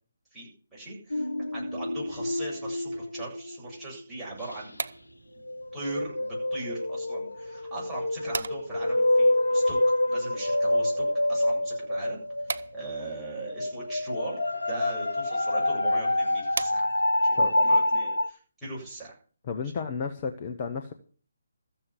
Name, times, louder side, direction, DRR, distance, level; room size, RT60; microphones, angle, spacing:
voice 1, 0.3-4.8 5.7-9.8 10.1-12.2 12.7-14.4 14.7-16.9 17.2-19.1, right 2 dB, 5° right, -7 dB, 7.8 m, -39 dB
sound 1, 1.1-4.0 4.4-4.6 5.5-12.9 13.1-18.3, left 1 dB, 80° left, 1.0 m, -27 dB
sound 2, 4.4-17.3, right 4 dB, 55° right, 0.8 m, -42 dB
voice 2, 19.4-20.9, left 5 dB, 30° left, 5 dB, 1.2 m, -32 dB
14.0 x 7.7 x 8.3 m, 0.43 s
figure-of-eight pair, 145°, 0 cm